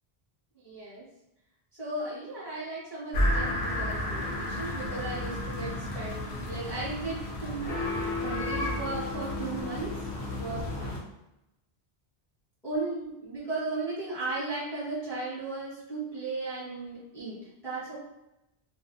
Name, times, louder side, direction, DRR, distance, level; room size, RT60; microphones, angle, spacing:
voice 1, 0.5-1.0 1.8-7.9 8.2-10.0 10.3-11.1 12.6-18.0, right 2 dB, 5° left, -9 dB, 0.9 m, -36 dB
sound 1, 3.1-11.0, left 1 dB, 80° left, 0.9 m, -32 dB
2.4 x 2.3 x 2.5 m, 0.91 s
omnidirectional pair, 1.1 m